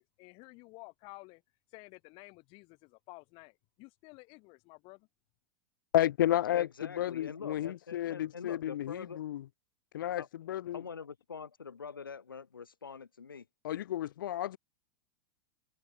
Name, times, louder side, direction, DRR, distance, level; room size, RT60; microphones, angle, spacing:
voice 1, 0.0-1.4 1.7-5.1, left 27 dB, 50° left, 3.6 m, -52 dB
voice 2, 5.9-9.5 9.9-10.8 13.6-14.6, left 12 dB, 70° left, 0.7 m, -32 dB
voice 3, 6.5-9.2 10.2-10.3 10.7-13.4, left 5 dB, 90° left, 1.2 m, -44 dB
hypercardioid pair, 95°, 11 cm